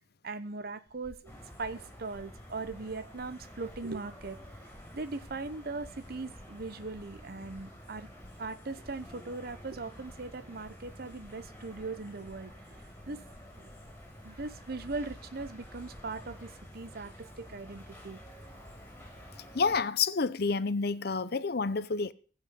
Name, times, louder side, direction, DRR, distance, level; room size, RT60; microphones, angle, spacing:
voice 1, 0.2-1.2 1.6-4.4 4.9-8.1 8.4-12.8 13.1-13.2 13.6-13.7 14.2-18.2, right 3 dB, 55° right, 0.9 m, -39 dB
sound 1, 0.9-16.3, equal, 35° right, 5.5 m, -58 dB
sound 2, 1.2-19.8, equal, 10° left, 7.3 m, -50 dB
voice 2, 19.5-22.1, left 4 dB, 60° left, 0.7 m, -29 dB
15.5 x 5.7 x 7.7 m
head